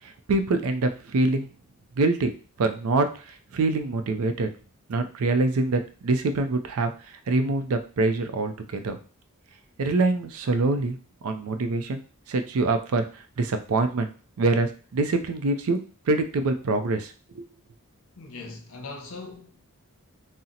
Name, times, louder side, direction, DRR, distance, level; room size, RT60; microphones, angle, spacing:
voice 1, 0.0-1.5 2.0-2.3 2.6-4.5 4.9-9.0 9.8-11.0 11.2-12.0 12.3-13.0 13.4-14.1 14.4-15.8 16.1-17.5, right 3 dB, 75° right, 0.4 m, -25 dB
voice 2, 18.2-19.7, left 3 dB, 65° left, 0.7 m, -40 dB
2.8 x 2.0 x 3.8 m
head